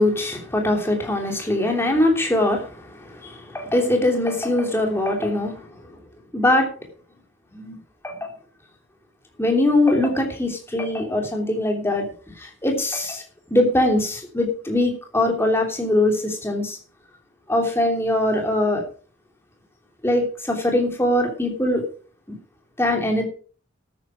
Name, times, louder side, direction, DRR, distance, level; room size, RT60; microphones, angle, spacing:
voice 1, 0.0-5.6 6.3-6.7 7.5-7.7 8.0-8.3 9.4-12.1 12.4-13.2 13.5-16.8 17.5-18.8 20.0-21.8 22.8-23.3, left 1 dB, 15° left, 2 dB, 3.2 m, -22 dB
12.5 x 9.7 x 5.0 m, 0.41 s
head